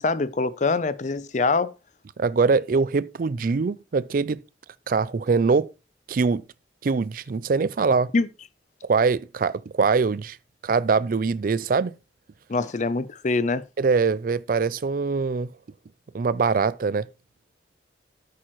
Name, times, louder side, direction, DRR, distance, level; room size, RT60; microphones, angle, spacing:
voice 1, 0.0-1.7 8.1-8.3 12.5-13.6, left 3 dB, 45° left, 0.5 m, -24 dB
voice 2, 2.2-4.4 4.9-5.7 6.1-6.4 6.8-8.1 8.8-10.4 10.6-11.9 13.8-15.5 16.1-17.1, right 4 dB, 50° right, 0.4 m, -23 dB
8.8 x 8.8 x 3.0 m
head